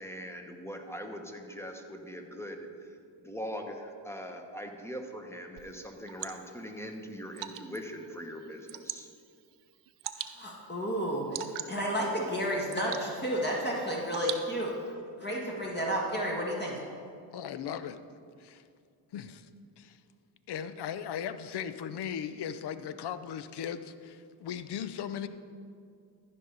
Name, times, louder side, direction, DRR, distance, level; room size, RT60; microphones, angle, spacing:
voice 1, 0.0-2.9 3.2-9.1, equal, 5° left, 4 dB, 1.2 m, -41 dB
Water / Drip, 5.6-14.9, right 11 dB, 60° right, 0.7 m, -44 dB
voice 2, 10.2-11.3 11.7-14.8 15.2-16.8, equal, 20° left, -3 dB, 1.8 m, -31 dB
voice 3, 17.3-18.0 18.4-18.6 19.1-19.5 19.8-20.0 20.5-25.3, left 8 dB, 55° left, 13 dB, 0.6 m, -37 dB
14.0 x 5.5 x 4.0 m, 2.3 s
supercardioid pair, 60°, 48 cm